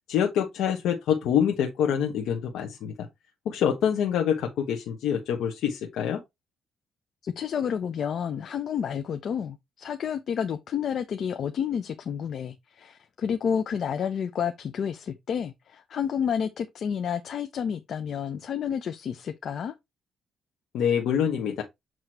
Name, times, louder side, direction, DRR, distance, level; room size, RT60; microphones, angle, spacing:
voice 1, 0.1-2.9 3.4-6.2 20.7-21.6, left 8 dB, 85° left, 1.2 m, -26 dB
voice 2, 7.2-19.7, left 7 dB, 60° left, 0.7 m, -30 dB
8.0 x 3.1 x 4.4 m
cardioid pair, 90°, 0 cm